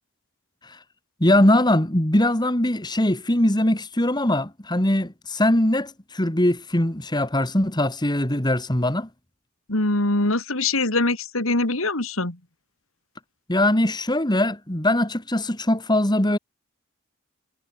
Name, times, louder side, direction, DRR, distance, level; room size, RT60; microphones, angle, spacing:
voice 1, 1.2-9.1 13.5-16.4, left 1 dB, 20° left, 2.3 m, -21 dB
voice 2, 9.7-12.4, left 2 dB, 70° left, 3.5 m, -23 dB
head